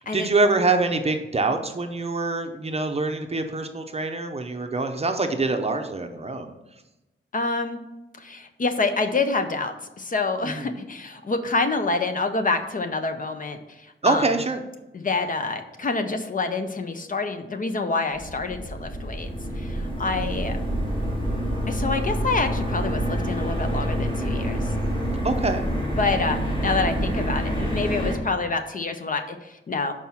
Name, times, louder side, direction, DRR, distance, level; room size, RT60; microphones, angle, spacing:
voice 1, 0.1-6.6 10.4-10.7 14.0-14.6 20.2-20.3 25.2-25.6, right 3 dB, 30° right, 6 dB, 0.6 m, -25 dB
voice 2, 7.3-7.8 8.1-14.3 14.9-19.3 19.6-20.6 21.7-24.7 26.0-29.9, left 3 dB, 40° left, 7 dB, 0.6 m, -27 dB
sound 1, 18.1-28.2, equal, 25° left, 1.7 m, -27 dB
6.0 x 4.7 x 5.5 m, 0.99 s
wide cardioid pair, 175°, 21 cm